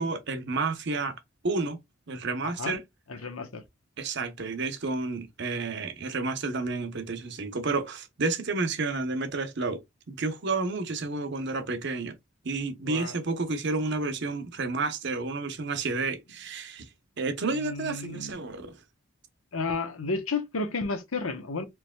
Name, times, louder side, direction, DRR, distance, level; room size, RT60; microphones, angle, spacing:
voice 1, 0.0-1.8 2.1-2.8 4.0-12.2 12.4-16.9 17.2-18.8, right 3 dB, 55° right, 0.8 m, -31 dB
voice 2, 2.4-2.8 3.1-3.6 12.9-13.1 17.5-18.4 19.5-21.7, left 3 dB, 80° left, 0.9 m, -32 dB
4.6 x 3.2 x 2.2 m
head